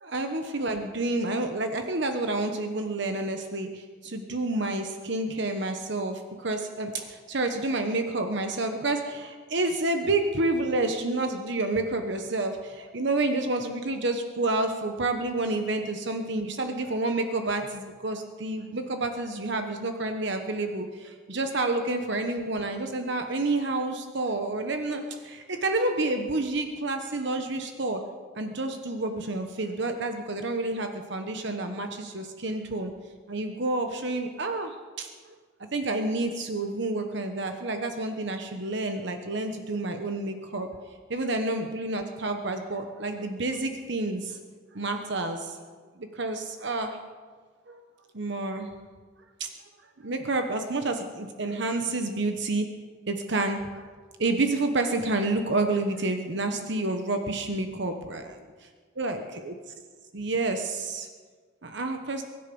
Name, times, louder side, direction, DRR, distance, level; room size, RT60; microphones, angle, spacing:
voice 1, 0.0-28.0 28.4-32.9 33.3-35.3 35.7-44.4 44.7-45.6 46.0-47.0 47.7-47.8 48.1-48.7 49.4-49.5 50.0-52.7 53.1-53.9 54.2-58.2 59.0-59.5 60.1-61.1 61.6-62.2, right 2 dB, 55° right, 6 dB, 1.1 m, -29 dB
23.5 x 10.5 x 5.4 m, 1.5 s
head